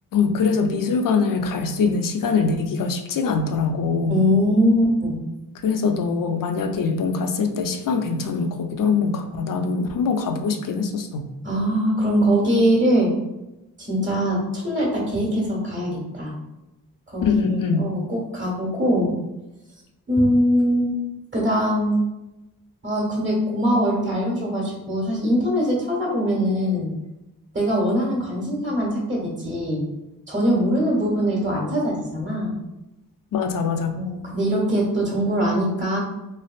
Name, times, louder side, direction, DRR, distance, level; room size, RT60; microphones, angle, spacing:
voice 1, 0.1-4.2 5.6-11.3 17.2-17.8 33.3-34.0, left 5 dB, 60° left, 6 dB, 0.5 m, -23 dB
voice 2, 4.1-5.2 11.4-13.1 13.8-16.3 17.1-17.4 17.7-19.1 20.1-21.0 21.3-21.9 22.8-26.9 27.5-29.8 30.3-32.6 33.9-36.0, equal, 30° right, -4 dB, 1.4 m, -22 dB
3.3 x 2.4 x 2.3 m, 0.96 s
cardioid pair, 45°, 37 cm